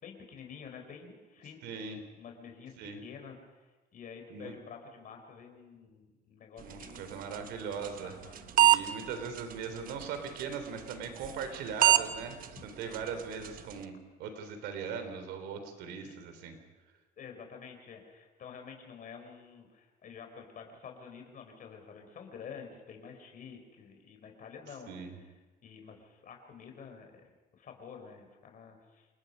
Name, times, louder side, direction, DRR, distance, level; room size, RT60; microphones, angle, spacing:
voice 1, 0.0-1.8 2.2-3.4 3.9-7.3 8.0-9.1 16.0-16.1 17.2-25.2 25.6-29.1, left 6 dB, 55° left, 4 dB, 4.4 m, -49 dB
voice 2, 1.6-2.0 2.8-3.0 4.3-4.6 6.6-8.2 8.6-13.9 14.2-16.6 24.9-25.2, right 6 dB, 90° right, 7 dB, 3.4 m, -39 dB
sound 1, 6.6-13.9, right 12 dB, 55° right, 1.1 m, -31 dB
28.5 x 19.0 x 5.5 m, 1.2 s
cardioid pair, 110°, 17 cm